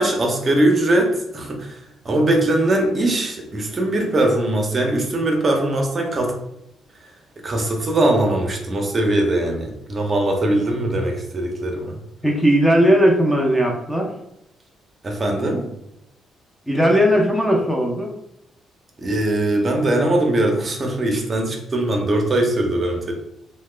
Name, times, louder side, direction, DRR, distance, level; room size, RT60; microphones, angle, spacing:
voice 1, 0.0-1.8 2.0-6.3 7.4-12.0 15.0-15.7 19.0-23.1, right 1 dB, 35° right, 2 dB, 0.6 m, -21 dB
voice 2, 12.2-14.1 16.7-18.1, equal, ahead, -1 dB, 0.6 m, -17 dB
2.8 x 2.1 x 3.2 m, 0.83 s
cardioid pair, 90°, 0 cm